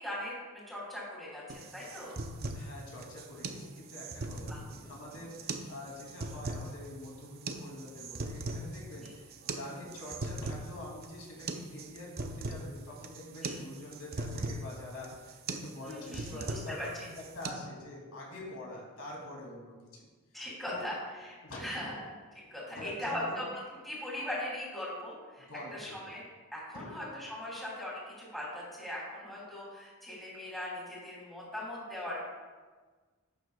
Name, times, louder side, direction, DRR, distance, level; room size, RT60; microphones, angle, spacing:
voice 1, 0.0-2.2 4.5-4.6 13.4-13.6 15.8-16.9 20.3-22.0 22.3-23.4 23.8-25.4 25.7-26.2 26.5-32.2, left 1 dB, ahead, -6 dB, 2.9 m, -40 dB
sound 1, 1.5-17.5, right 2 dB, 45° right, 0.6 m, -40 dB
voice 2, 2.5-16.8 17.1-20.1 20.7-20.8 21.4-21.8 22.8-23.4 25.4-26.0 26.7-26.9, left 1 dB, 80° left, -3 dB, 2.6 m, -45 dB
11.0 x 9.4 x 2.3 m, 1.4 s
head